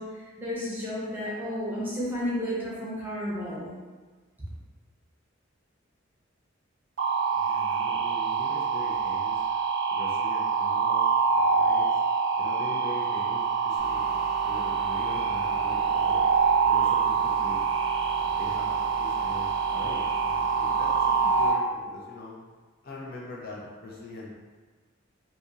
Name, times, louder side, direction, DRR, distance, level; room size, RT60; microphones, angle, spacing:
voice 1, 0.0-3.7, equal, 10° right, -8 dB, 0.7 m, -32 dB
sound 1, 7.0-21.5, right 5 dB, 65° right, 0.4 m, -25 dB
voice 2, 7.3-9.4 9.9-11.9 12.4-16.2 16.6-17.7 18.1-22.4 22.8-24.4, left 2 dB, 50° left, -4 dB, 0.5 m, -42 dB
sound 2, 13.8-21.5, right 1 dB, 65° left, 0.8 m, -44 dB
2.8 x 2.7 x 2.4 m, 1.4 s
head